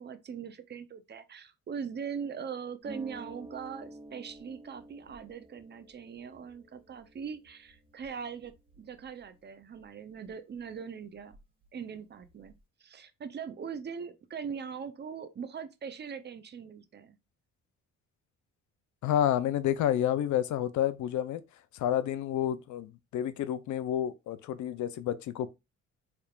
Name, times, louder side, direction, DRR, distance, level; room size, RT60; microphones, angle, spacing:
voice 1, 0.0-11.4 11.7-17.2, right 6 dB, 35° right, 0.6 m, -41 dB
Harp, 2.8-10.3 10.6-11.7 11.9-12.6, right 1 dB, 20° right, 1.7 m, -51 dB
voice 2, 19.0-21.4 21.7-25.5, left 11 dB, 75° left, 0.5 m, -29 dB
4.5 x 3.3 x 2.4 m
cardioid pair, 90°, 30 cm